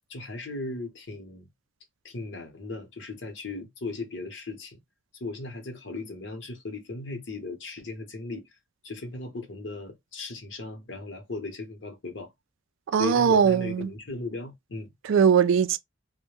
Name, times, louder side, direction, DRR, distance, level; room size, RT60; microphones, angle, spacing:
voice 1, 0.1-1.5 2.0-4.8 5.1-8.6 8.8-12.3 13.0-14.9, left 3 dB, 65° left, 0.8 m, -37 dB
voice 2, 12.9-13.9 15.1-15.8, right 7 dB, 75° right, 0.3 m, -20 dB
2.1 x 2.1 x 3.0 m
head